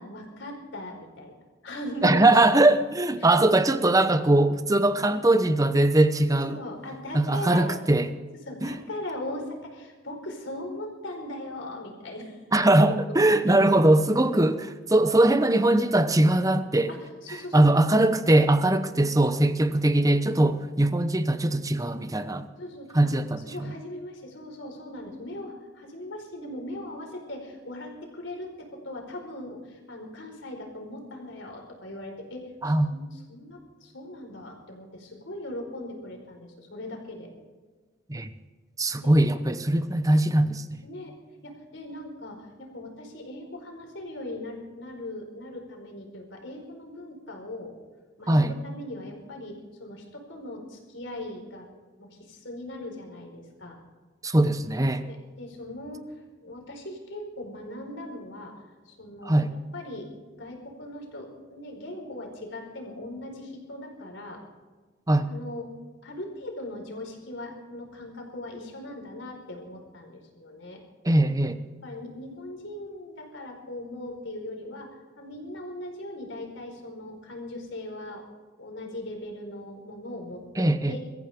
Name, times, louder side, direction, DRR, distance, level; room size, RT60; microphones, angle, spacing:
voice 1, 0.0-1.3 1.6-2.2 3.2-3.3 5.1-5.3 6.3-7.6 8.4-12.4 14.9-15.1 16.9-17.0 17.2-17.9 18.9-19.1 22.2-22.3 22.6-23.1 23.4-37.3 39.0-39.1 40.8-41.1 41.4-47.7 48.2-51.6 52.0-53.8 55.0-56.1 56.4-58.5 58.8-60.1 60.3-64.4 65.3-65.7 66.0-70.8 71.8-74.9 75.1-78.2 78.6-81.0, left 1 dB, 65° left, 1 dB, 4.7 m, -39 dB
voice 2, 2.0-6.6 7.1-8.1 8.6-8.8 12.5-16.9 17.5-22.4 22.9-23.7 32.6-32.9 38.1-38.3 38.8-40.8 48.3-48.5 54.2-55.1 59.2-59.5 65.1-65.3 71.0-71.6 80.6-81.0, right 1 dB, 15° right, 11 dB, 0.9 m, -21 dB
23.5 x 14.5 x 3.7 m, 1.4 s
head